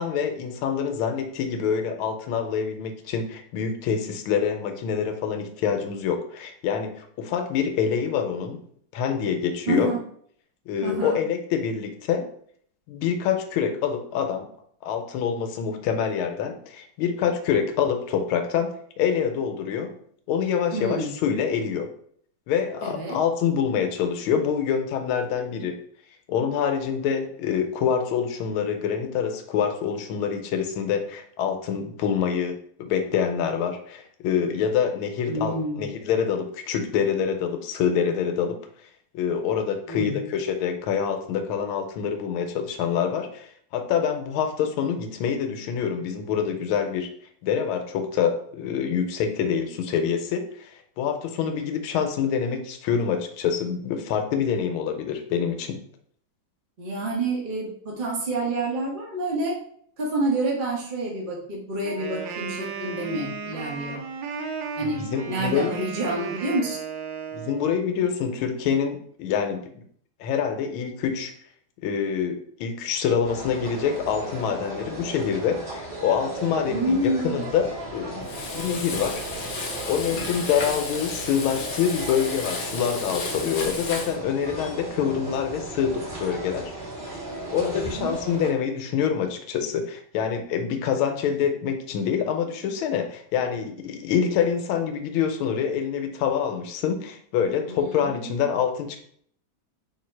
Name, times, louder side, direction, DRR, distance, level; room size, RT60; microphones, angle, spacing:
voice 1, 0.0-8.6 8.9-9.9 10.7-12.2 12.9-14.5 14.8-18.7 19.0-19.9 20.3-21.9 22.5-25.8 26.3-38.6 39.1-47.1 47.4-55.8 64.8-65.7 67.3-69.8 70.2-71.3 71.8-79.2 79.9-86.7 87.5-99.0, left 7 dB, 80° left, 6 dB, 1.4 m, -26 dB
voice 2, 9.7-10.0 10.8-11.2 20.7-21.1 22.8-23.2 35.3-35.8 39.9-40.3 56.8-59.6 60.0-64.0 64.8-65.0 65.3-66.8 76.7-77.5 80.1-80.2 87.6-88.1 97.7-98.3, right 2 dB, 50° right, -3 dB, 0.6 m, -28 dB
Wind instrument woodwind instrument, 61.8-67.7, right 5 dB, 75° right, 1.2 m, -35 dB
sound 1, 73.2-88.5, right 2 dB, 25° right, 1.8 m, -36 dB
Frying (food), 78.2-84.1, left 3 dB, 65° left, 0.9 m, -34 dB
3.8 x 2.7 x 4.3 m, 0.62 s
omnidirectional pair, 2.3 m